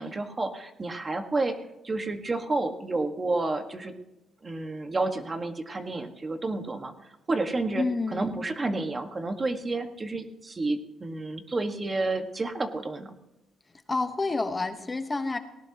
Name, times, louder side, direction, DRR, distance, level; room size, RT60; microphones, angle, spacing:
voice 1, 0.0-4.0 4.4-6.9 7.3-7.8 8.1-13.1, right 2 dB, 30° right, 6 dB, 1.5 m, -30 dB
voice 2, 7.7-8.4 13.9-15.4, left 3 dB, 25° left, 7 dB, 1.1 m, -29 dB
19.0 x 18.0 x 2.9 m, 0.97 s
cardioid pair, 90°, 0 cm